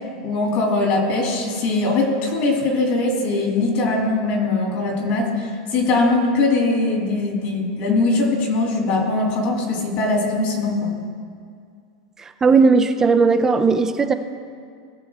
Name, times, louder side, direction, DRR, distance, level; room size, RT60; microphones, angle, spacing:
voice 1, 0.2-10.9, left 2 dB, 50° left, 0 dB, 2.6 m, -21 dB
voice 2, 12.2-14.1, right 4 dB, 15° right, 9 dB, 0.4 m, -17 dB
18.0 x 6.8 x 3.6 m, 2.2 s
supercardioid pair, 145°, 3 cm